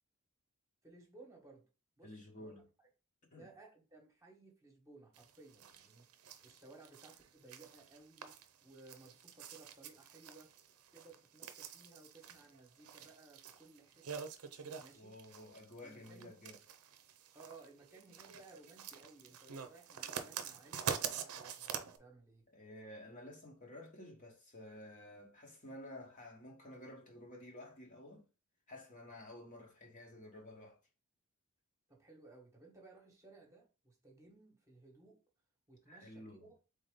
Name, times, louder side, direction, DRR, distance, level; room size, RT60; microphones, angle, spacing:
voice 1, 0.8-1.6 2.0-2.9 3.3-6.0 6.4-8.3 8.6-10.5 10.9-14.3 14.8-15.1 15.8-16.4 17.3-22.5 31.9-35.2 35.7-36.5, right 3 dB, 15° right, 1.1 m, -59 dB
voice 2, 2.0-2.7 3.3-3.5 14.9-16.6 22.5-28.3 28.7-30.8 35.9-36.5, left 1 dB, 35° left, 1.0 m, -52 dB
sound 1, 5.2-22.0, right 7 dB, 80° right, 0.6 m, -46 dB
4.0 x 3.5 x 3.6 m
head